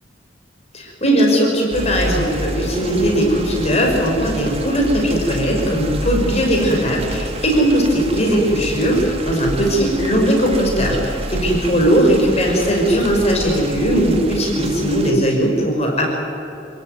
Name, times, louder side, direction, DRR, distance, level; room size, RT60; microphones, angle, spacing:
voice 1, 0.7-16.1, equal, 35° left, 0 dB, 5.4 m, -18 dB
sound 1, 1.7-15.1, right 1 dB, 30° right, 1.9 m, -28 dB
28.0 x 16.5 x 9.5 m, 2.9 s
head